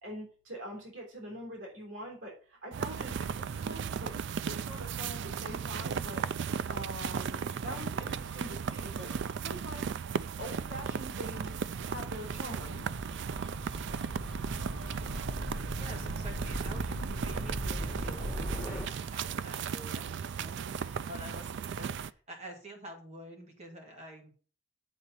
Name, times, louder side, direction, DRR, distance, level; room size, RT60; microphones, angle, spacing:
voice 1, 0.0-4.1 4.5-6.2 6.7-9.1 9.4-9.9 10.4-11.6 11.9-12.8, equal, 80° right, -1 dB, 3.7 m, -44 dB
sound 1, 2.7-22.1, right 7 dB, 65° right, 0.4 m, -36 dB
Gull seagull / Waves surf / Siren, 4.1-18.9, equal, 5° left, 2.7 m, -42 dB
voice 2, 15.8-24.3, right 1 dB, 35° right, 1 dB, 2.2 m, -48 dB
8.0 x 4.1 x 7.0 m, 0.40 s
head